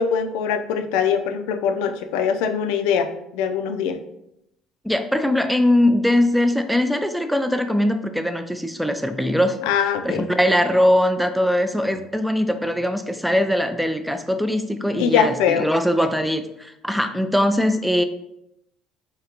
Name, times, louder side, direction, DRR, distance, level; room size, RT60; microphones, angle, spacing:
voice 1, 0.0-4.0 9.7-10.3 15.0-15.7, left 7 dB, 85° left, 8 dB, 0.4 m, -22 dB
voice 2, 4.8-9.6 10.0-18.0, left 1 dB, ahead, 8 dB, 0.3 m, -21 dB
3.7 x 3.3 x 2.8 m, 0.81 s
supercardioid pair, 90°, 0 cm